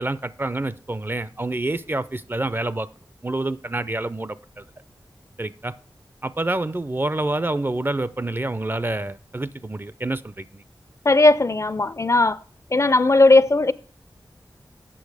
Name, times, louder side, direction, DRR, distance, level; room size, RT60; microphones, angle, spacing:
voice 1, 0.0-2.9 3.2-4.6 5.4-5.7 6.2-10.6, right 2 dB, 25° right, 0.4 m, -27 dB
voice 2, 11.1-12.4 12.7-13.7, left 2 dB, 40° left, 0.4 m, -17 dB
8.5 x 6.6 x 4.8 m
wide cardioid pair, 75°, 8 cm